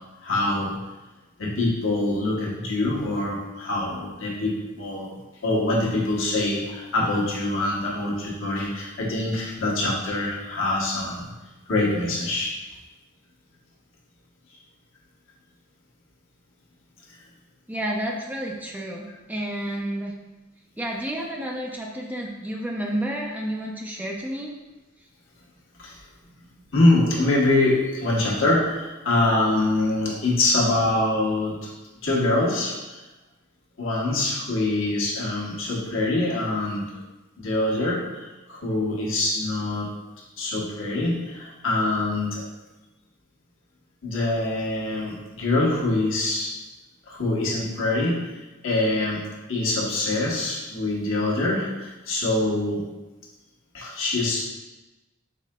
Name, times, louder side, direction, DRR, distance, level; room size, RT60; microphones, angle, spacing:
voice 1, 0.2-0.8 1.4-11.3 11.7-12.6 25.8-26.0 26.7-31.7 32.0-33.0 33.8-36.9 37.4-39.9 40.4-42.4 44.0-46.5 47.1-49.2 49.5-52.9 53.7-54.5, left 2 dB, 75° left, -4 dB, 1.0 m, -24 dB
voice 2, 17.7-20.1 20.8-24.5, right 1 dB, 10° right, -1 dB, 0.3 m, -30 dB
4.8 x 3.6 x 2.2 m, 1.1 s
head